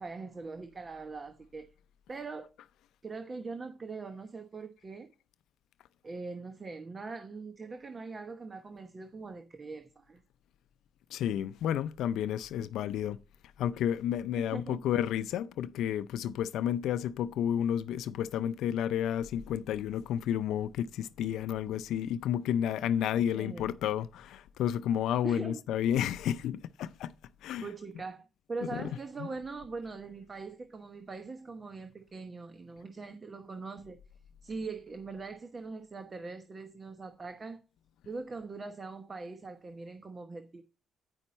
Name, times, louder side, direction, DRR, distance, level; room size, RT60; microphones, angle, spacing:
voice 1, 0.0-1.7 2.1-2.5 3.0-5.1 6.0-10.2 12.6-12.7 14.4-14.8 23.3-23.7 25.2-25.6 27.6-34.0 34.4-37.6 38.0-40.6, right 4 dB, 30° right, 1.0 m, -42 dB
voice 2, 11.1-13.2 13.6-27.1 27.4-27.7 28.7-28.9 29.2-29.3, left 10 dB, 80° left, 0.4 m, -31 dB
9.9 x 5.3 x 4.2 m
cardioid pair, 90°, 0 cm